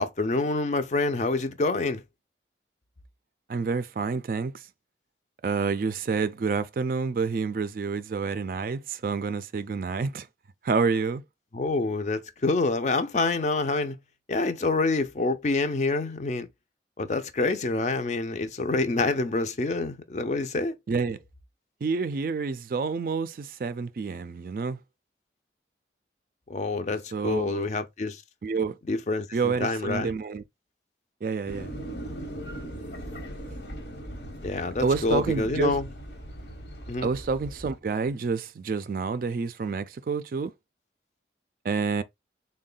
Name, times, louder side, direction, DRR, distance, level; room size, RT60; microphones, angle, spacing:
voice 1, 0.0-2.0 11.5-14.0 14.3-16.5 17.0-20.7 26.5-28.2 28.9-30.1 34.4-35.9 36.9-37.1, left 3 dB, 40° left, 0.5 m, -27 dB
voice 2, 3.5-4.5 5.4-10.3 10.6-11.2 20.9-21.2 21.8-24.8 27.1-27.7 28.4-28.7 29.3-30.4 31.2-31.7 34.8-35.8 37.0-40.5 41.6-42.0, right 5 dB, 50° right, 0.3 m, -28 dB
sound 1, 31.5-37.8, right 1 dB, 80° left, 1.1 m, -39 dB
3.6 x 2.2 x 3.8 m
head